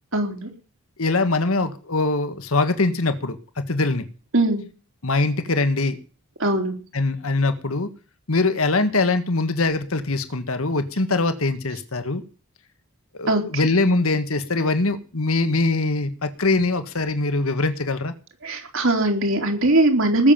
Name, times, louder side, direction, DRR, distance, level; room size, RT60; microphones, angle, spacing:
voice 1, 0.1-0.5 4.3-4.6 6.4-6.7 13.3-13.4 18.4-20.3, right 2 dB, 60° right, 3 dB, 3.9 m, -20 dB
voice 2, 1.0-4.1 5.0-6.0 6.9-7.9 8.3-12.2 13.1-18.1, left 3 dB, 70° left, 9 dB, 1.7 m, -22 dB
19.5 x 7.3 x 7.3 m, 0.36 s
head